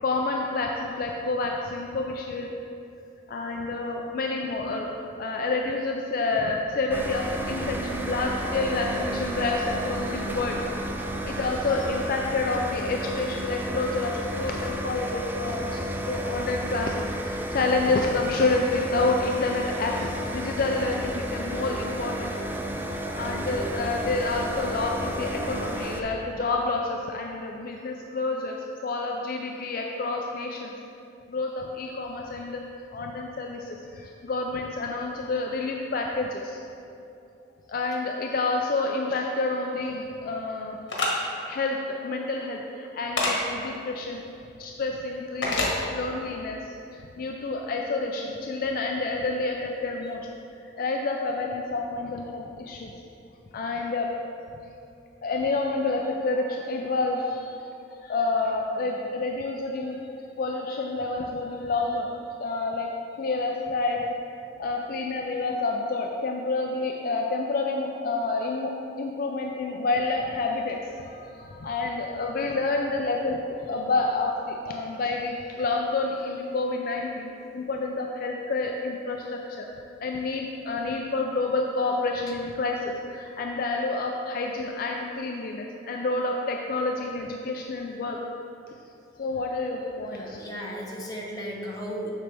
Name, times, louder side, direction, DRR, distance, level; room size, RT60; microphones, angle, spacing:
voice 1, 0.0-2.5 3.3-4.9 5.2-10.7 11.3-22.3 23.2-28.6 28.8-30.7 31.3-32.6 32.9-36.6 37.7-40.8 41.5-44.2 44.6-50.3 50.8-52.9 53.5-54.1 55.2-57.7 58.0-60.0 60.4-62.9 63.2-64.1 64.6-79.7 80.0-88.2 89.2-90.4, left 3 dB, 50° left, 1 dB, 0.4 m, -29 dB
sound 1, 6.9-26.0, right 1 dB, 10° right, 0.4 m, -32 dB
sound 2, 40.9-41.1 43.2-43.3 45.4-45.7, left 2 dB, 85° left, 1.3 m, -24 dB
voice 2, 90.1-92.1, equal, 20° left, -3 dB, 0.9 m, -35 dB
7.3 x 6.2 x 3.4 m, 2.7 s
head